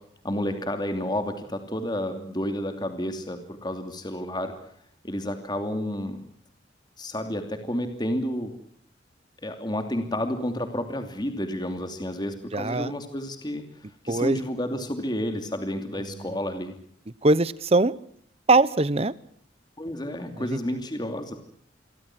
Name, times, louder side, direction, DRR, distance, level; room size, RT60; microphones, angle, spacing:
voice 1, 0.2-4.5 5.0-6.2 7.0-8.5 9.4-13.6 14.0-16.7 19.8-21.3, left 1 dB, 25° left, 6 dB, 2.8 m, -30 dB
voice 2, 12.5-12.9 14.1-14.4 17.2-17.9 18.5-19.1 20.4-20.6, right 2 dB, 35° right, 18 dB, 0.9 m, -21 dB
28.0 x 23.0 x 6.1 m, 0.65 s
head